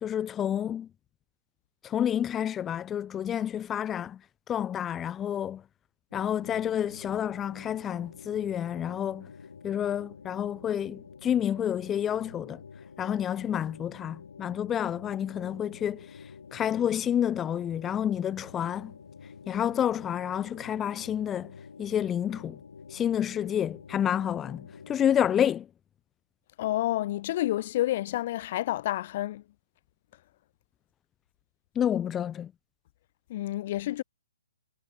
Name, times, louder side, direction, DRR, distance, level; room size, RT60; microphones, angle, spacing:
voice 1, 0.0-0.9 1.8-4.2 4.5-5.6 6.1-9.2 9.6-12.6 13.0-16.0 16.5-18.9 19.5-21.5 21.8-22.5 22.9-25.7 31.8-32.5, left 9 dB, 15° left, 1.0 m, -29 dB
sound 1, 6.1-25.0, left 5 dB, 75° left, 7.2 m, -48 dB
voice 2, 26.6-29.4 33.3-34.0, left 14 dB, 45° left, 1.6 m, -29 dB
hypercardioid pair, 135°, 0 cm